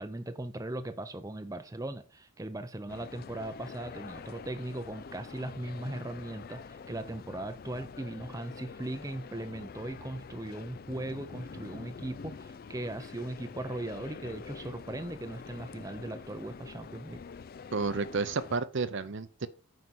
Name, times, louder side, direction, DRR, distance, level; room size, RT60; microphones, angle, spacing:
voice 1, 0.0-17.2, right 1 dB, 15° right, 0.5 m, -39 dB
sound 1, 2.9-18.6, left 5 dB, 40° left, 0.3 m, -46 dB
voice 2, 17.7-19.5, right 4 dB, 55° right, 0.6 m, -31 dB
9.5 x 4.8 x 6.1 m
head